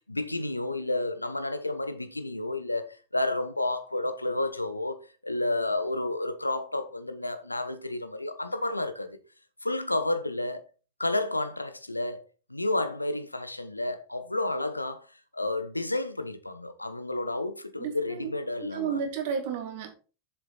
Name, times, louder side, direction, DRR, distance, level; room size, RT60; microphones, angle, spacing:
voice 1, 0.0-9.2 9.6-10.7 11.0-15.1 15.3-19.0, left 2 dB, 85° left, 0.9 m, -31 dB
voice 2, 17.8-18.3 18.6-19.9, right 7 dB, 50° right, 2.2 m, -32 dB
7.5 x 6.8 x 4.1 m
figure-of-eight pair, 90°, 0 cm